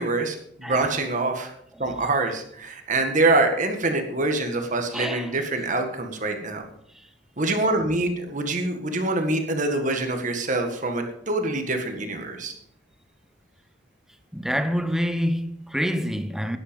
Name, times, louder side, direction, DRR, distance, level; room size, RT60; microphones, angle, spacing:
voice 1, 0.0-1.5 1.8-6.6 7.4-12.5, right 2 dB, 40° right, 1.6 m, -25 dB
voice 2, 0.6-1.0 4.9-5.4 6.9-7.1 14.3-16.6, equal, ahead, 0.8 m, -27 dB
12.5 x 10.0 x 5.3 m
head